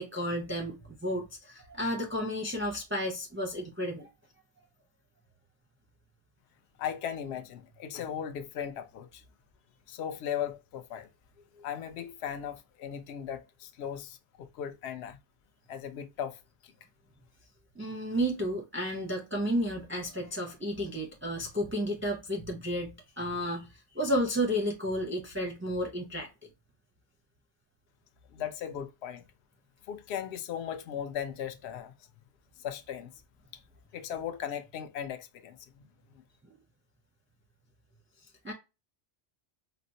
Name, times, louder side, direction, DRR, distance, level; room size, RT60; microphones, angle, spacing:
voice 1, 0.0-4.1 17.8-26.3 36.4-36.5 38.4-38.5, equal, 15° right, 0.5 m, -32 dB
voice 2, 6.8-9.2 9.9-11.1 11.6-15.2 15.7-16.7 28.3-29.2 29.9-31.9 32.6-33.1 33.5-33.6 33.9-35.6 36.1-36.2, left 9 dB, 65° left, 0.8 m, -37 dB
4.3 x 2.1 x 2.6 m
omnidirectional pair, 1.3 m